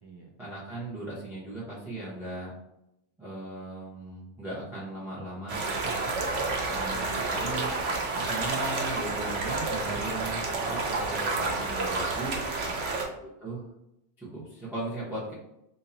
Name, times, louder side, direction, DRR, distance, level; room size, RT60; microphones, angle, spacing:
voice 1, 0.4-2.5 3.2-5.9 6.6-12.4 13.2-13.6 14.2-15.3, right 2 dB, ahead, -8 dB, 0.9 m, -38 dB
sound 1, 5.5-13.1, right 3 dB, 90° right, 1.0 m, -30 dB
voice 2, 5.8-7.2 12.6-13.0, right 4 dB, 40° right, -3 dB, 0.3 m, -47 dB
2.8 x 2.8 x 3.8 m, 0.85 s
omnidirectional pair, 1.2 m